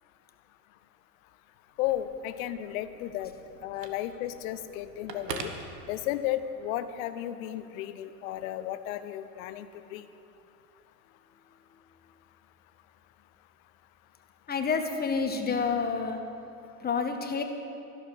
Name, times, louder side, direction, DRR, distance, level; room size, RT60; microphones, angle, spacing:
Telephone, 1.7-6.5, right 5 dB, 80° right, 1.5 m, -44 dB
voice 1, 1.8-3.3 3.6-5.5 5.9-10.1, left 12 dB, 55° left, 12 dB, 1.0 m, -34 dB
voice 2, 14.5-16.2 16.8-17.4, left 5 dB, 20° left, 5 dB, 1.4 m, -28 dB
13.5 x 11.5 x 6.2 m, 2.7 s
hypercardioid pair, 90°, 49 cm